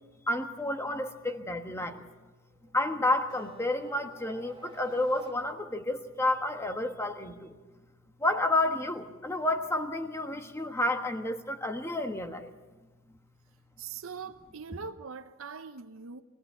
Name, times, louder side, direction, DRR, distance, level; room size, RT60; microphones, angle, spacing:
voice 1, 0.3-2.0 2.7-7.5 8.2-12.5, left 2 dB, 15° left, 1.3 m, -30 dB
sound 1, 2.6-5.9, right 3 dB, 25° right, 1.9 m, -49 dB
Acoustic guitar, 3.3-6.6, right 1 dB, 50° left, 6.6 m, -57 dB
voice 2, 13.8-16.2, right 5 dB, 70° right, 0.8 m, -42 dB
23.5 x 17.0 x 8.2 m
head